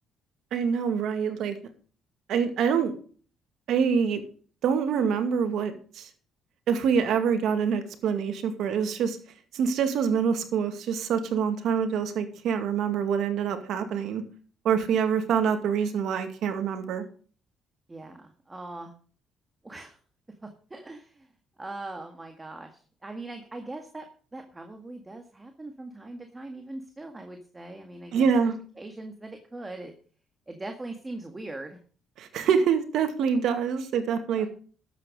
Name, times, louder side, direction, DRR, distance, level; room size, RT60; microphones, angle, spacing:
voice 1, 0.5-1.6 2.3-2.9 3.7-4.2 4.6-6.1 6.7-9.2 9.5-14.2 14.6-17.0 28.1-28.5 32.2-34.5, right 7 dB, 70° right, 7 dB, 2.2 m, -25 dB
voice 2, 17.9-18.9 19.6-20.0 20.4-21.3 21.6-22.7 23.0-24.1 24.3-28.5 28.8-29.9 30.5-31.8 34.4-34.5, right 2 dB, 15° right, 5 dB, 1.8 m, -41 dB
12.5 x 8.3 x 5.1 m, 0.42 s
cardioid pair, 100°, 0 cm